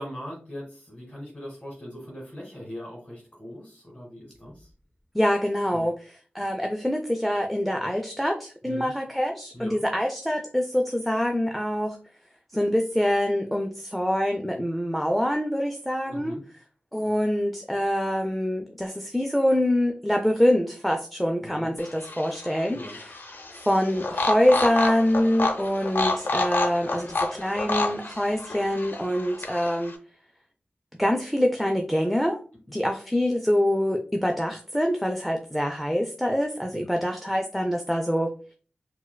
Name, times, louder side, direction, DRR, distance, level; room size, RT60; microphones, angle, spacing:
voice 1, 0.0-4.7 5.7-5.9 8.6-8.9 9.5-9.8 16.0-16.4 21.4-21.7 22.7-23.0 36.7-36.8, equal, 25° left, -2 dB, 1.1 m, -40 dB
voice 2, 5.1-5.9 6.3-12.0 12.5-16.4 16.9-23.1 23.7-29.9 31.0-32.4 32.7-38.3, equal, ahead, 3 dB, 0.4 m, -25 dB
sound 1, 21.8-29.9, left 2 dB, 65° left, 0.5 m, -29 dB
4.5 x 2.2 x 2.2 m, 0.39 s
wide cardioid pair, 60°, 4 cm